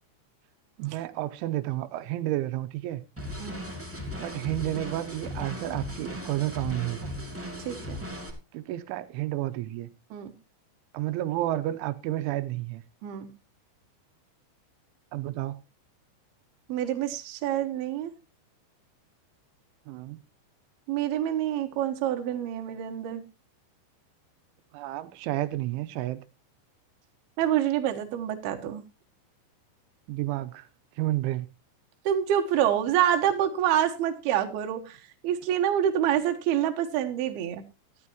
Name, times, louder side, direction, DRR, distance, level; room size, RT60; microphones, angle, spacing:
voice 1, 0.8-3.0 4.2-7.1 8.5-9.9 10.9-12.8 15.1-15.6 19.9-20.2 24.7-26.2 30.1-30.7 31.0-31.5, right 15 dB, 85° right, 3.2 m, -31 dB
sound 1, 3.2-8.3, left 1 dB, 10° right, 0.6 m, -37 dB
voice 2, 7.7-8.0 10.1-10.3 13.0-13.3 16.7-18.1 20.9-23.2 27.4-28.8 32.1-35.0 35.2-37.6, right 10 dB, 65° right, 2.9 m, -27 dB
14.5 x 12.5 x 3.0 m
omnidirectional pair, 5.5 m